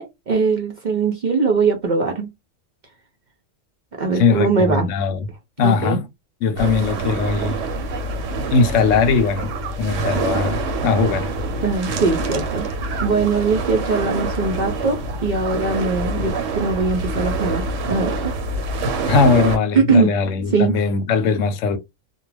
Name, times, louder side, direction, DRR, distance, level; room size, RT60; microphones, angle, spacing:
voice 1, 0.0-2.3 3.9-4.9 5.6-6.0 11.6-12.7 13.0-18.3 19.7-20.1 20.5-20.8, right 4 dB, 55° right, 0.5 m, -21 dB
voice 2, 4.1-5.3 5.6-6.0 6.4-7.6 8.5-9.5 9.8-11.3 19.1-21.8, left 5 dB, 90° left, 1.0 m, -19 dB
sound 1, 6.6-19.6, right 3 dB, 85° right, 1.0 m, -26 dB
2.3 x 2.1 x 3.2 m
omnidirectional pair, 1.3 m